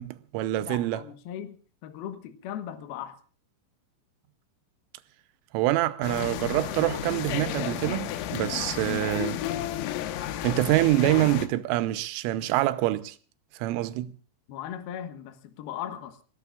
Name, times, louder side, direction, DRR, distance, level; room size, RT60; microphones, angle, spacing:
voice 1, 0.0-1.0 5.5-9.4 10.4-13.2 13.6-14.1, right 16 dB, 80° right, 3.3 m, -26 dB
voice 2, 0.6-3.2 14.5-16.2, left 10 dB, 65° left, 2.6 m, -38 dB
sound 1, 6.0-11.5, left 11 dB, 85° left, 3.8 m, -32 dB
26.0 x 18.0 x 2.5 m
omnidirectional pair, 5.9 m